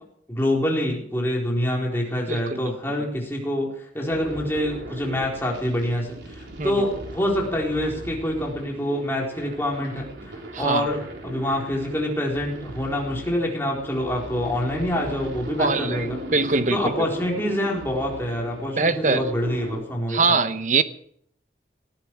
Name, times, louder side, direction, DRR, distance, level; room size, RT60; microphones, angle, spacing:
voice 1, 0.3-3.7 3.9-16.2 16.7-20.4, left 1 dB, 15° left, -2 dB, 4.1 m, -26 dB
voice 2, 2.3-2.7 6.6-6.8 10.5-10.9 15.6-16.1 16.3-16.8 18.8-19.2 20.1-20.8, right 4 dB, 45° right, 12 dB, 0.9 m, -22 dB
sound 1, 4.1-19.8, right 1 dB, 80° right, 3.7 m, -38 dB
19.0 x 14.5 x 4.8 m, 0.66 s
head